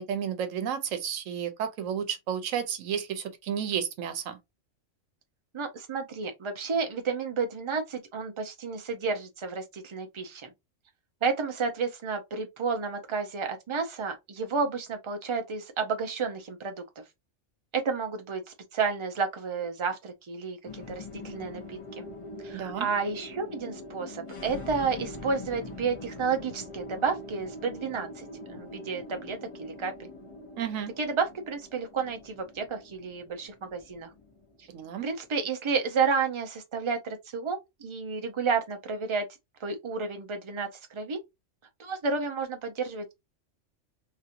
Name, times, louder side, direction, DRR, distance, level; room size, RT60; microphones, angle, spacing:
voice 1, 0.0-4.4 22.5-22.9 30.6-30.9 34.7-35.1, right 8 dB, 90° right, 1.1 m, -32 dB
voice 2, 5.5-10.5 11.2-16.8 17.7-18.4 18.7-22.1 22.4-30.1 31.0-34.1 35.0-39.3 39.6-41.2 41.8-43.1, right 5 dB, 50° right, 0.3 m, -31 dB
sound 1, 20.6-35.2, left 2 dB, 30° left, 0.7 m, -43 dB
2.9 x 2.8 x 2.5 m
omnidirectional pair, 1.3 m